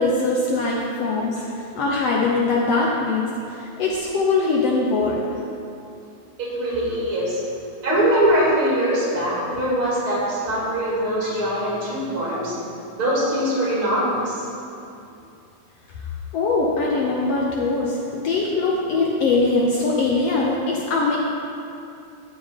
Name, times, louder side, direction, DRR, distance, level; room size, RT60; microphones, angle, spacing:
voice 1, 0.0-1.4 1.7-3.2 3.5-5.3 16.3-21.2, left 3 dB, 70° left, -3 dB, 1.6 m, -21 dB
voice 2, 6.4-7.4 7.8-12.6 12.9-14.5, equal, 45° right, -6 dB, 2.8 m, -22 dB
12.5 x 7.3 x 3.5 m, 2.6 s
omnidirectional pair, 3.6 m